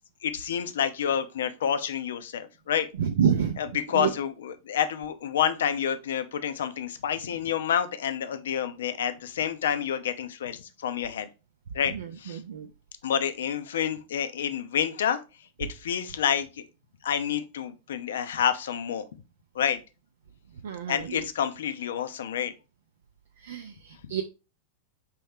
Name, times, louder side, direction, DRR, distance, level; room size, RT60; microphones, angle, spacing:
voice 1, 0.2-2.9 3.6-11.3 11.7-12.4 13.0-15.2 15.6-16.5 17.0-19.1 19.5-19.8 20.9-22.5, left 8 dB, 60° left, 0.5 m, -28 dB
voice 2, 3.0-3.6 3.9-4.1 11.9-12.7 20.6-21.3 23.4-24.2, right 8 dB, 65° right, 0.4 m, -28 dB
4.4 x 3.1 x 3.4 m
figure-of-eight pair, 90°, 0 cm